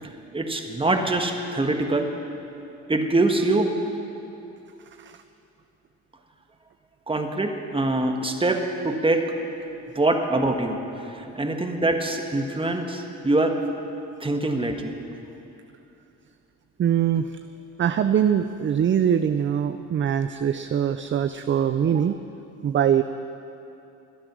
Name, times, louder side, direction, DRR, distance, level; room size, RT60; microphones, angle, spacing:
voice 1, 0.0-2.1 2.9-3.7 7.1-9.4 9.9-13.6 14.2-14.9, right 2 dB, 15° right, 4 dB, 1.6 m, -24 dB
voice 2, 16.8-17.4 17.8-22.2 22.6-23.0, right 9 dB, 40° right, 10 dB, 0.5 m, -23 dB
24.0 x 8.8 x 6.2 m, 2.8 s
cardioid pair, 90°, 30 cm